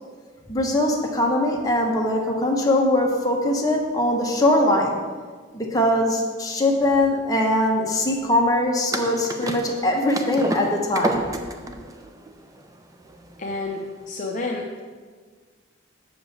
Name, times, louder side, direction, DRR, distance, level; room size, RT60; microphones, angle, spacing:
voice 1, 0.5-5.0 5.5-11.3, left 1 dB, 20° left, -1 dB, 1.1 m, -21 dB
sound 1, 8.9-14.0, right 1 dB, 15° right, 0.5 m, -30 dB
voice 2, 13.4-14.8, left 2 dB, 40° left, 0 dB, 0.6 m, -30 dB
7.0 x 5.1 x 7.1 m, 1.6 s
head